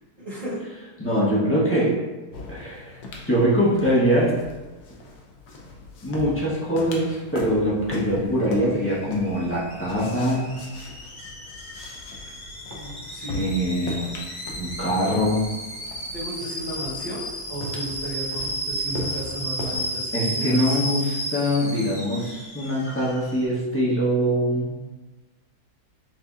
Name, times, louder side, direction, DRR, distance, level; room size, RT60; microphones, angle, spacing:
voice 1, 0.2-0.6 12.7-13.5 16.1-17.2 17.5-20.8, right 1 dB, 25° right, -9 dB, 1.2 m, -34 dB
voice 2, 1.0-2.0 2.5-3.0 3.3-4.3 6.0-10.5 13.3-14.1 14.5-15.5 20.1-24.7, equal, 10° left, -8 dB, 0.6 m, -23 dB
sound 1, 2.3-19.8, left 2 dB, 85° left, 1.3 m, -39 dB
Alarm / Boiling, 8.6-23.4, equal, 35° left, 1.1 m, -33 dB
7.3 x 2.7 x 2.3 m, 1.2 s
omnidirectional pair, 1.7 m